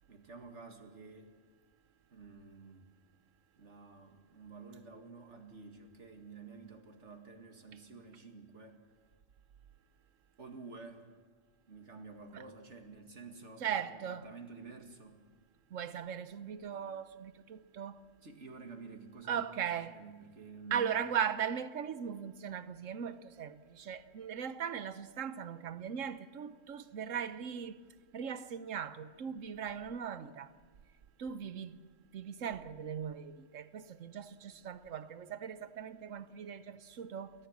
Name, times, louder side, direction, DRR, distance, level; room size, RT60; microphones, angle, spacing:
voice 1, 0.1-1.3 2.1-2.9 3.6-8.8 10.4-11.1 11.7-15.2 18.2-20.9, right 4 dB, 65° right, 2.4 m, -50 dB
voice 2, 13.6-14.3 15.7-18.0 19.3-20.0 20.7-27.8 28.1-30.5 31.2-31.7 32.1-37.3, right 8 dB, 90° right, 1.3 m, -38 dB
29.0 x 14.5 x 7.4 m
omnidirectional pair, 1.3 m